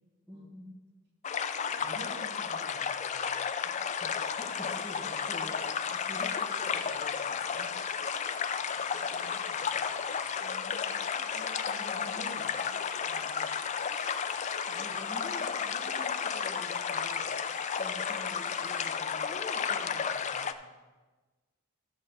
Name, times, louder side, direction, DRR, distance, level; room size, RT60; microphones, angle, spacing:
voice 1, 0.3-0.7 3.6-4.1 4.4-5.6 5.9-7.7 10.4-11.2 11.8-12.0 14.7-20.6, left 1 dB, 5° right, -4 dB, 1.4 m, -48 dB
sound 1, 1.2-20.5, left 7 dB, 30° left, 0.3 m, -33 dB
voice 2, 1.3-3.3 8.7-9.8 10.1-10.2 11.3-13.8, right 1 dB, 50° right, -2 dB, 2.2 m, -51 dB
sound 2, 4.3-19.0, right 5 dB, 25° right, 0.6 m, -55 dB
13.5 x 6.3 x 3.9 m, 1.3 s
head